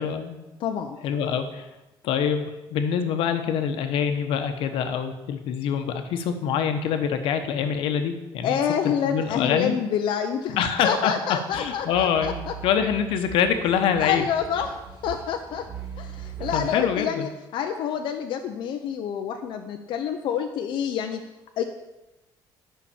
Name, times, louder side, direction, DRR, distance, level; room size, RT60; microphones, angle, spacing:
voice 1, 0.0-0.4 1.0-1.7 2.0-8.6 9.0-9.8 10.6-11.1 11.5-12.4 12.6-14.2 16.5-17.3, left 7 dB, 85° left, 7 dB, 1.1 m, -25 dB
voice 2, 0.6-1.0 8.4-10.6 10.8-12.5 14.0-14.7 15.0-15.6 16.0-21.2 21.6-21.7, left 8 dB, 65° left, 4 dB, 0.7 m, -27 dB
sound 1, 11.5-16.7, right 7 dB, 10° right, 3.0 m, -39 dB
10.5 x 5.7 x 7.1 m, 1.0 s
cardioid pair, 165°, 9 cm